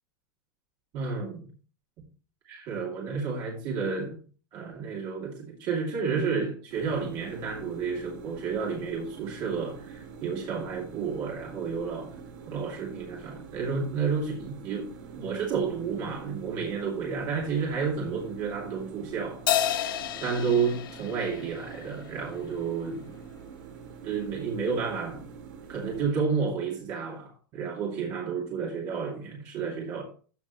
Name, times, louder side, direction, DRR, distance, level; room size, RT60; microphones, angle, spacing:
voice 1, 0.9-1.5 2.5-4.2 4.5-12.2 12.5-19.4 20.2-23.1 24.0-25.2 25.7-30.0, right 5 dB, 35° right, 2.6 m, -31 dB
sound 1, 6.7-26.0, right 6 dB, 65° right, 2.9 m, -45 dB
Crash cymbal, 19.5-22.2, left 11 dB, 85° left, 1.1 m, -30 dB
14.5 x 6.2 x 3.1 m
supercardioid pair, 165°, 11 cm